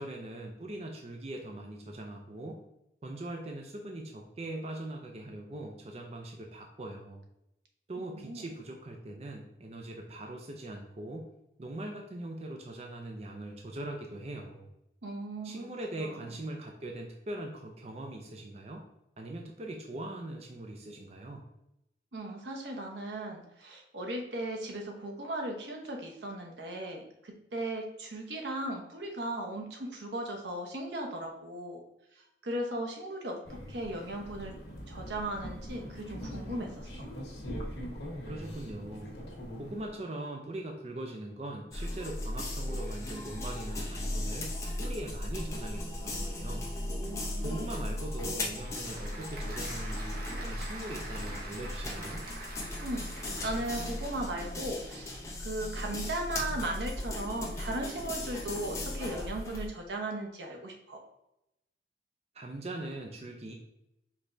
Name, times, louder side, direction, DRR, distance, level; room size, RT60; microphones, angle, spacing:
voice 1, 0.0-2.6 3.0-7.2 7.9-11.3 11.6-14.7 15.4-18.8 19.2-21.4 38.3-39.2 39.6-46.7 47.4-52.3 62.3-63.5, right 1 dB, 35° right, 2 dB, 0.5 m, -41 dB
voice 2, 8.0-8.5 15.0-15.7 16.0-16.2 22.1-31.8 32.1-34.6 34.9-37.1 46.9-47.9 52.8-61.0, right 1 dB, 85° right, 1 dB, 0.9 m, -37 dB
sound 1, 33.4-39.9, equal, 75° left, 1.4 m, -42 dB
sound 2, 41.7-59.7, left 1 dB, 15° left, 0.7 m, -37 dB
Applause / Crowd, 48.4-54.5, right 2 dB, 55° right, 0.9 m, -45 dB
5.1 x 3.3 x 2.6 m, 0.85 s
head